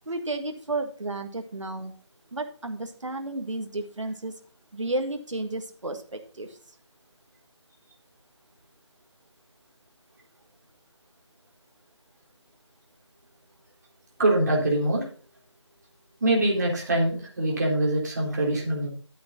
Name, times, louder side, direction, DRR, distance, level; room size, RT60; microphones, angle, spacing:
voice 1, 0.0-2.0 2.3-4.3 4.7-6.6, right 2 dB, 85° right, 6 dB, 1.8 m, -32 dB
voice 2, 14.2-15.0 16.2-18.9, right 1 dB, 35° right, -2 dB, 3.7 m, -24 dB
11.0 x 8.5 x 4.0 m, 0.39 s
figure-of-eight pair, 170°, 16 cm